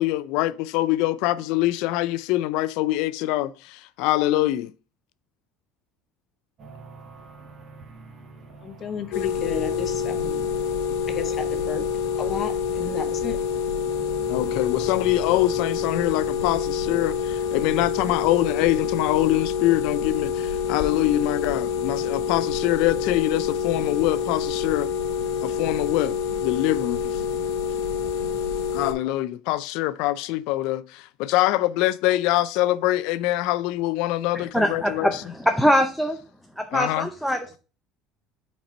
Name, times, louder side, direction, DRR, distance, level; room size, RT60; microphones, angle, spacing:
voice 1, 0.0-4.7 14.3-24.9 25.4-27.2 28.7-35.2 36.7-37.1, left 16 dB, 70° left, 0.4 m, -24 dB
sound 1, 6.6-18.6, right 4 dB, 35° right, 1.4 m, -45 dB
voice 2, 8.6-10.4 11.1-11.8 12.2-13.4, left 7 dB, 40° left, 0.7 m, -32 dB
sound 2, 9.1-28.9, left 7 dB, 90° left, 0.8 m, -27 dB
voice 3, 34.3-36.2 36.6-37.6, equal, ahead, 0.5 m, -23 dB
5.8 x 4.3 x 4.4 m
cardioid pair, 150°, 0 cm